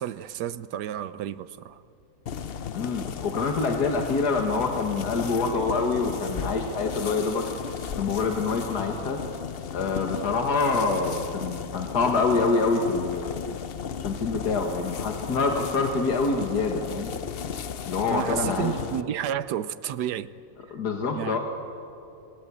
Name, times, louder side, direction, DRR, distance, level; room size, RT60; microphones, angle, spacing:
voice 1, 0.0-1.8 18.1-20.3 21.1-21.4, right 10 dB, 85° right, 1.4 m, -31 dB
sound 1, 2.3-19.0, left 7 dB, 50° left, 0.7 m, -35 dB
voice 2, 2.7-7.4 8.0-9.2 9.7-13.4 14.0-17.1 17.9-18.7 20.7-21.4, left 4 dB, 80° left, 2.3 m, -26 dB
28.0 x 22.0 x 8.6 m
omnidirectional pair, 1.7 m